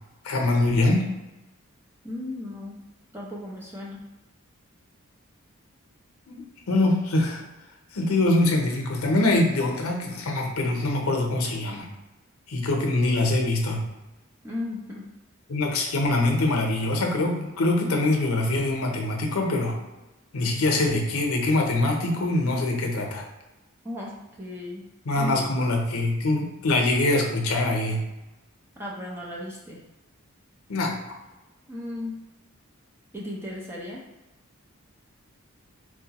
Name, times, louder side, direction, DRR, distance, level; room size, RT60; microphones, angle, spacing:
voice 1, 0.2-1.0 6.3-6.4 6.7-7.4 7.9-11.9 12.5-13.8 15.5-19.7 20.3-23.2 25.1-28.0 30.7-30.9, left 2 dB, 90° left, 1 dB, 0.7 m, -23 dB
voice 2, 2.0-2.8 3.1-4.0 14.4-15.0 23.8-24.8 25.1-25.4 28.8-29.8 31.7-32.1 33.1-34.0, left 1 dB, 10° right, -4 dB, 0.6 m, -35 dB
4.6 x 2.1 x 2.9 m, 1.0 s
head